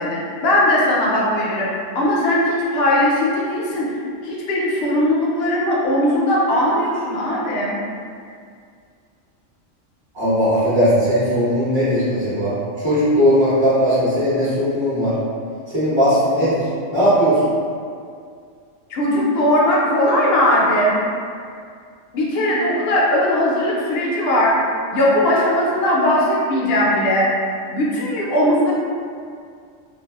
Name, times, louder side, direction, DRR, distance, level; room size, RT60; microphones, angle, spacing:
voice 1, 0.0-1.7 1.9-3.9 4.2-7.8 18.9-21.0 22.1-24.5 24.9-27.3 27.7-28.7, left 1 dB, 60° left, -5 dB, 0.7 m, -19 dB
voice 2, 10.1-12.6 12.8-15.1 15.7-16.6 16.9-17.5, equal, 25° right, -13 dB, 0.9 m, -18 dB
2.5 x 2.3 x 2.3 m, 2.3 s
omnidirectional pair, 1.3 m